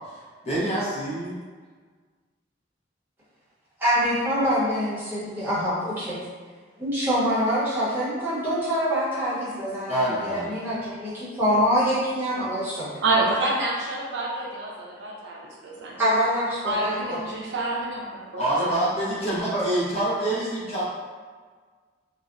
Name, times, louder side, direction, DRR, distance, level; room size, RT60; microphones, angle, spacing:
voice 1, 0.4-1.4 9.9-10.8 18.4-20.8, right 1 dB, 35° left, -8 dB, 0.6 m, -26 dB
voice 2, 3.8-6.2 6.8-12.9 16.0-17.4 19.5-19.6, equal, 10° right, -11 dB, 0.8 m, -25 dB
voice 3, 13.0-16.0 16.6-19.3, right 2 dB, 75° right, -3 dB, 0.5 m, -28 dB
2.5 x 2.0 x 2.4 m, 1.5 s
head